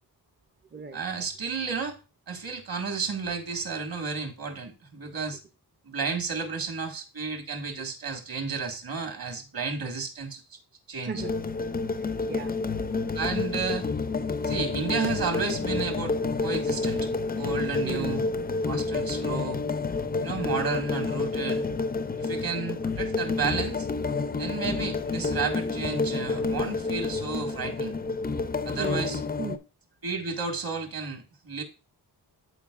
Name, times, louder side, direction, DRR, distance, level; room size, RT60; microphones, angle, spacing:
voice 1, 0.9-2.0 2.3-5.4 5.9-10.6 10.9-11.2 13.1-13.9 14.4-17.1 17.4-18.2 18.6-19.6 20.2-21.7 22.2-23.9 24.4-27.9 28.7-29.2 30.0-31.6, right 5 dB, 55° right, 1.8 m, -32 dB
voice 2, 11.0-11.3 11.9-12.6 17.8-18.1 28.7-29.6, right 5 dB, 25° right, 0.6 m, -37 dB
sound 1, 11.2-29.6, left 3 dB, 25° left, 0.4 m, -29 dB
13.0 x 4.4 x 2.4 m
wide cardioid pair, 135°, 41 cm